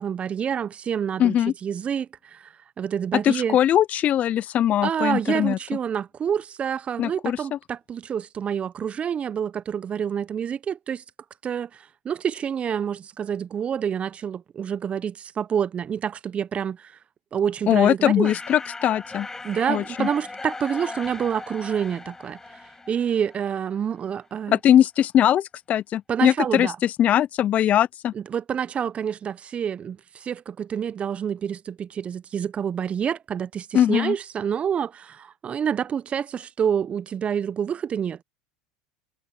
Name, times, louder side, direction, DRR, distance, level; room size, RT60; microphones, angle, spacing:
voice 1, 0.0-2.1 2.8-3.6 4.8-11.0 11.4-11.7 12.1-16.8 17.3-18.4 19.4-22.4 22.9-24.6 26.1-26.8 28.1-30.0 30.3-34.9 35.4-38.2, right 8 dB, 30° right, 0.8 m, -27 dB
voice 2, 1.2-1.5 3.2-5.6 7.0-7.6 17.7-19.3 19.7-20.1 24.5-28.1 33.7-34.1, left 11 dB, 40° left, 0.4 m, -21 dB
sound 1, 18.2-23.8, left 3 dB, 15° left, 6.1 m, -38 dB
hypercardioid pair, 90°, 4 cm